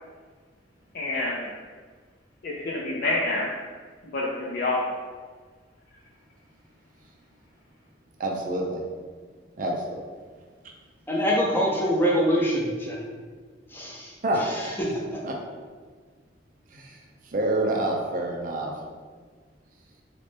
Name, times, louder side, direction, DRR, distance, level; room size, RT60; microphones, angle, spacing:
voice 1, 0.9-1.4 2.4-3.5 4.1-4.8, left 2 dB, 60° left, -4 dB, 0.5 m, -27 dB
voice 2, 8.2-8.8 9.6-10.0 14.2-14.4 15.2-15.3 16.7-17.0 17.3-18.7, right 1 dB, 50° right, 0 dB, 0.5 m, -27 dB
voice 3, 11.1-13.1 13.7-14.7 15.1-15.2, equal, 10° left, -3 dB, 0.7 m, -25 dB
4.0 x 3.2 x 3.3 m, 1.5 s
head